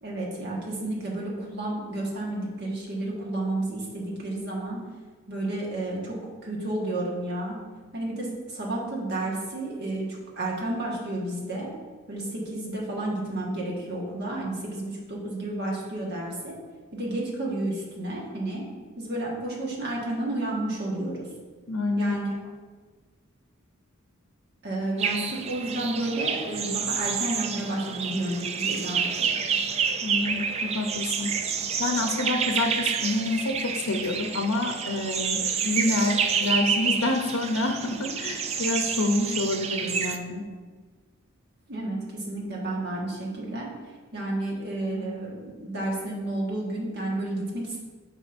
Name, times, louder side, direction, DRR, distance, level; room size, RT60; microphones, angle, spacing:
voice 1, 0.0-4.8 5.3-6.1 6.4-7.6 7.9-11.7 12.1-16.5 16.9-18.6 19.0-21.3 22.0-22.5 24.6-29.2 41.7-43.7 44.1-47.8, right 1 dB, 50° right, -3 dB, 1.5 m, -31 dB
voice 2, 21.7-22.1 30.0-40.4, left 2 dB, 90° left, 4 dB, 0.7 m, -28 dB
sound 1, 25.0-40.2, right 6 dB, 30° right, 0.3 m, -29 dB
9.5 x 5.2 x 2.6 m, 1.4 s
head